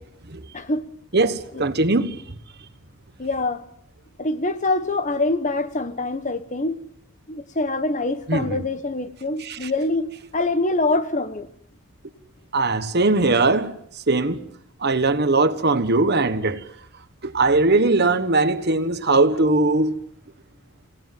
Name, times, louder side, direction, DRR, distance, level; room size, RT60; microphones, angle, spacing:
voice 1, 1.1-2.2 8.3-8.6 9.4-9.7 12.5-13.7 14.1-14.4 14.8-16.6 17.2-19.9, right 3 dB, 50° right, 1.4 m, -20 dB
voice 2, 3.2-3.6 4.2-6.8 7.3-11.5, left 2 dB, 35° left, 1.2 m, -25 dB
29.0 x 18.0 x 7.7 m
head